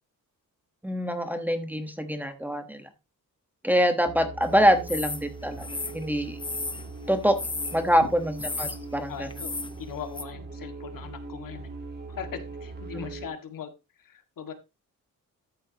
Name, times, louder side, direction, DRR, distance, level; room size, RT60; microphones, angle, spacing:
voice 1, 0.8-2.9 3.6-5.7 5.9-6.4 7.1-7.4 7.7-9.3, equal, 5° right, 7 dB, 1.2 m, -25 dB
sound 1, 4.1-13.3, right 3 dB, 30° right, 2.4 m, -41 dB
sound 2, 4.9-5.2 5.6-6.9 7.4-7.8 8.4-8.8 9.3-9.7 10.2-10.3, left 3 dB, 15° left, 0.7 m, -33 dB
voice 2, 9.1-9.5 9.8-11.7 12.1-13.7 14.0-14.5, left 8 dB, 75° left, 7 dB, 1.9 m, -39 dB
13.5 x 8.5 x 2.9 m, 0.26 s
wide cardioid pair, 165°, 33 cm